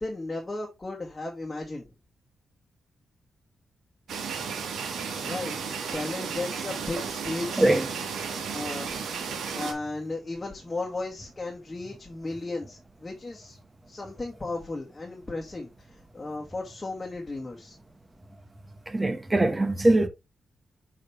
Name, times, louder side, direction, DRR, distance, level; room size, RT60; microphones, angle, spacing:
voice 1, 0.0-1.9 5.2-5.6 5.9-7.7 8.5-9.0 9.5-13.6 13.9-17.8, left 2 dB, 25° left, 1.7 m, -35 dB
sound 1, 4.1-9.7, right 6 dB, 85° right, 1.5 m, -33 dB
voice 2, 7.6-7.9 18.9-20.1, right 1 dB, 20° right, 1.1 m, -22 dB
6.5 x 5.0 x 3.2 m
cardioid pair, 95°, 0 cm